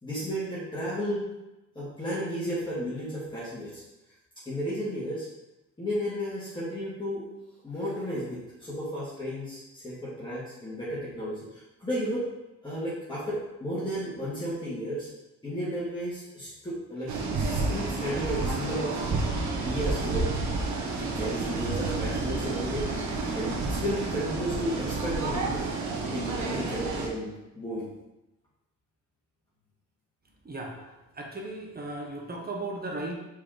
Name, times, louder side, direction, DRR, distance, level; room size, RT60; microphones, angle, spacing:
voice 1, 0.0-1.2 1.7-3.8 4.5-5.3 5.8-7.3 7.6-12.2 12.6-15.1 15.4-19.0 19.6-20.3 21.0-22.9 23.3-25.7 26.0-27.9, equal, 15° left, -10 dB, 2.6 m, -33 dB
sound 1, 17.1-27.1, right 3 dB, 65° right, 1.5 m, -30 dB
voice 2, 31.1-33.1, right 2 dB, 30° right, 0 dB, 1.4 m, -36 dB
5.4 x 4.9 x 5.2 m, 0.99 s
cardioid pair, 90°, 30 cm